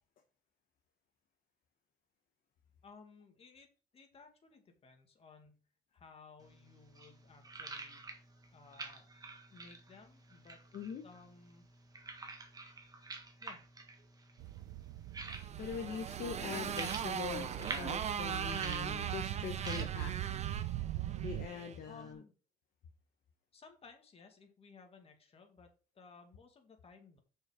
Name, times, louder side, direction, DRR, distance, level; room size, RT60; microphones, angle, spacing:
voice 1, 2.8-3.7 3.9-5.6 5.9-8.0 8.5-9.1 9.5-10.6 11.0-11.7 13.4-13.6 21.8-22.3 23.5-25.7 26.0-27.2, left 4 dB, 35° left, 4 dB, 2.3 m, -58 dB
sound 1, 6.4-22.1, right 3 dB, 20° right, 1.6 m, -50 dB
voice 2, 10.7-11.0 15.6-20.1 21.2-22.2, left 7 dB, 55° left, 4 dB, 1.1 m, -43 dB
metro arrival, 14.4-21.5, right 15 dB, 85° right, 0.6 m, -41 dB
Motorcycle, 15.3-21.8, right 7 dB, 40° right, 0.8 m, -40 dB
6.6 x 5.8 x 5.0 m, 0.36 s
cardioid pair, 110°, 17 cm